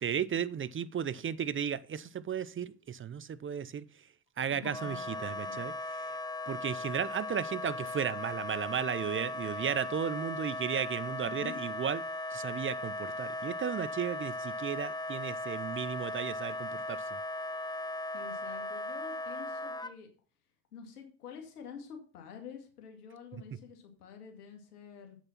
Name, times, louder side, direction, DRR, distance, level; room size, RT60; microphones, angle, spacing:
voice 1, 0.0-3.8 4.4-5.7 6.1-6.2 6.5-12.0 12.3-17.0, right 8 dB, 30° right, 0.6 m, -34 dB
voice 2, 4.5-5.6 11.2-11.6 18.1-20.1 20.7-25.2, left 6 dB, 90° left, 2.4 m, -48 dB
Wind instrument woodwind instrument, 4.6-19.9, left 2 dB, 10° left, 0.6 m, -38 dB
8.0 x 7.1 x 5.8 m
hypercardioid pair, 65°, 44 cm